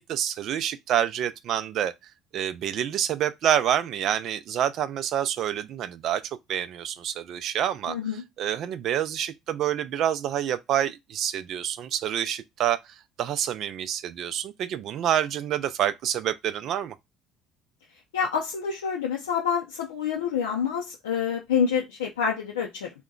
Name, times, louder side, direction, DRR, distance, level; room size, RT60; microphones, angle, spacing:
voice 1, 0.0-1.9 2.3-8.0 8.4-17.0, right 10 dB, 60° right, 0.4 m, -27 dB
voice 2, 7.9-8.2 18.1-22.9, left 7 dB, 85° left, 0.4 m, -27 dB
2.8 x 2.1 x 3.7 m
hypercardioid pair, 60°, 0 cm